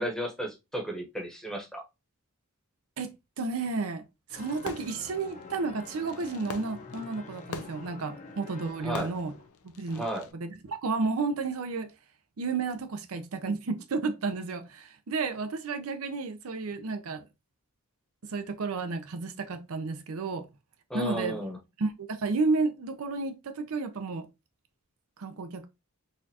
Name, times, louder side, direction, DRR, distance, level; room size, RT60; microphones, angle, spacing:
voice 1, 0.0-1.8 8.8-9.1 9.9-10.3 20.9-21.6, equal, ahead, 0.9 m, -34 dB
voice 2, 3.0-4.0 4.3-9.3 9.6-10.0 10.3-11.9 12.4-17.2 18.2-20.4 20.9-21.3 21.8-24.3 25.2-25.7, right 4 dB, 70° right, 0.5 m, -32 dB
Fireworks, 4.3-10.3, left 5 dB, 75° left, 0.5 m, -45 dB
sound 1, 4.3-9.5, left 3 dB, 35° left, 0.6 m, -47 dB
4.2 x 2.4 x 2.7 m
head